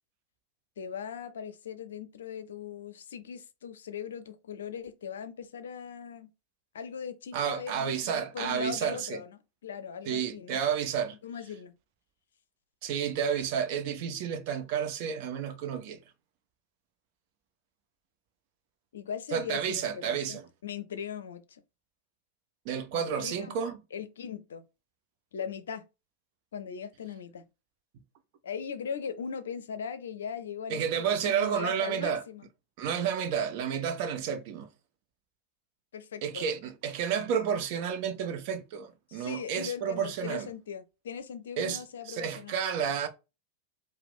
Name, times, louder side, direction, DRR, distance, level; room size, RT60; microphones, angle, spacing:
voice 1, 0.8-6.3 6.7-10.6 11.2-11.7 18.9-21.6 22.9-23.6 23.9-24.6 25.3-25.9 26.5-27.5 28.4-32.4 35.9-36.5 39.1-42.6, left 7 dB, 65° left, 0.5 m, -39 dB
voice 2, 7.3-9.2 10.1-11.2 12.8-16.0 19.3-20.4 22.6-23.8 30.7-32.2 32.8-34.7 36.2-40.5 41.6-43.1, right 7 dB, 45° right, 0.8 m, -31 dB
4.7 x 2.2 x 3.6 m
figure-of-eight pair, 90°, 0 cm